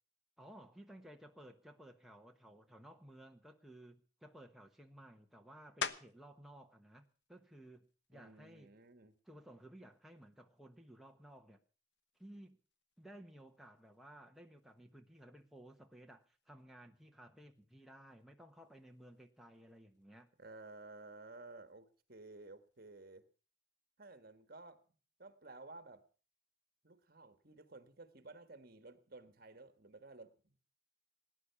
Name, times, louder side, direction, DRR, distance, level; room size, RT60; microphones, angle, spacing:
voice 1, 0.4-8.7 9.2-11.6 12.2-12.6 13.0-20.3, right 1 dB, ahead, 2 dB, 1.1 m, -57 dB
sound 1, 5.8-6.4 7.0-11.4 11.9-17.1 17.4-23.0, left 6 dB, 65° left, 1.0 m, -51 dB
voice 2, 8.1-9.2 20.4-23.2 24.0-24.8 25.2-26.0 26.8-30.6, right 3 dB, 50° right, 11 dB, 1.6 m, -54 dB
18.5 x 10.0 x 6.9 m, 0.39 s
head